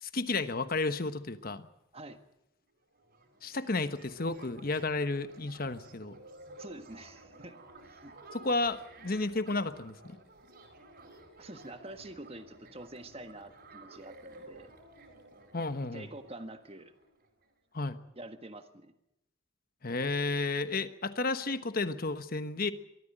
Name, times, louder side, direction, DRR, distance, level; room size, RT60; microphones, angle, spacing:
voice 1, 0.0-1.7 3.4-6.2 8.3-10.2 15.5-16.1 17.7-18.0 19.8-22.7, left 3 dB, 45° left, 11 dB, 1.2 m, -32 dB
sound 1, 2.6-2.7 2.9-17.5, right 2 dB, 50° right, 4.6 m, -54 dB
voice 2, 6.6-7.6 7.9-8.1 11.4-14.7 15.9-16.9 18.1-18.9, right 1 dB, 30° right, 7 dB, 1.5 m, -47 dB
23.5 x 14.0 x 9.0 m, 0.84 s
head